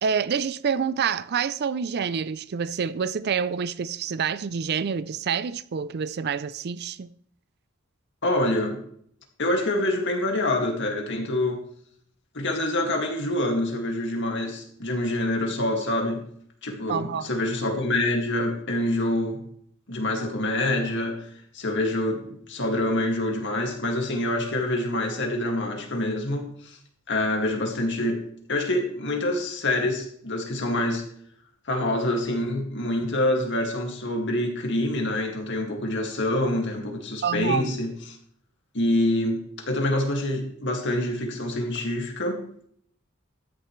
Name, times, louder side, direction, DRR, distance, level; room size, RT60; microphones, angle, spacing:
voice 1, 0.0-7.1 16.9-17.3 37.2-37.7, right 6 dB, 50° right, 0.4 m, -27 dB
voice 2, 8.2-8.8 9.4-11.6 12.3-16.2 16.6-19.4 19.9-21.3 21.5-26.8 27.1-28.2 28.5-31.0 31.7-38.2 38.7-42.4, left 1 dB, 60° left, 2.1 m, -26 dB
13.5 x 10.0 x 3.2 m
head